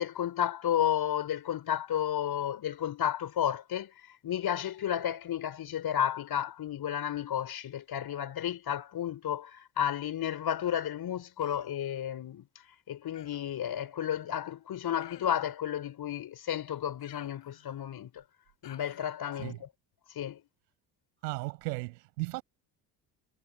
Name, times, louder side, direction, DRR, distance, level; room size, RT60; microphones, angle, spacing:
voice 1, 0.0-12.5 12.9-18.2 18.6-19.7 20.1-20.4, left 10 dB, 50° left, 3.9 m, -32 dB
Human voice, 11.4-11.8 13.1-13.6 15.0-15.6 17.0-17.9 18.6-19.2, left 12 dB, 90° left, 7.8 m, -54 dB
voice 2, 21.2-22.4, right 25 dB, 80° right, 7.8 m, -36 dB
hypercardioid pair, 60°, 48 cm